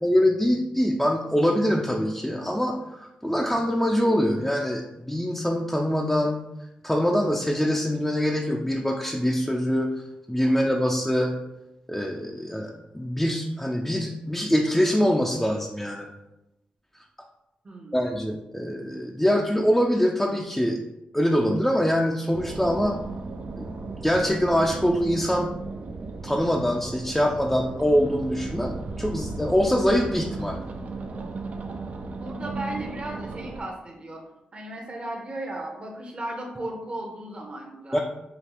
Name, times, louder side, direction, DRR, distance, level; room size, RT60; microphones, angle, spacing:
voice 1, 0.0-6.4 6.8-11.3 11.9-16.1 17.9-20.8 21.1-23.0 23.6-23.7 24.0-25.5 26.2-30.6 37.9-38.0, equal, 5° left, -1 dB, 0.5 m, -24 dB
voice 2, 17.6-18.1 32.1-34.2 34.5-38.0, right 1 dB, 40° right, 0 dB, 0.9 m, -35 dB
sound 1, 22.3-33.6, right 3 dB, 55° right, 0.5 m, -35 dB
5.1 x 2.4 x 2.9 m, 0.90 s
supercardioid pair, 55°, 3 cm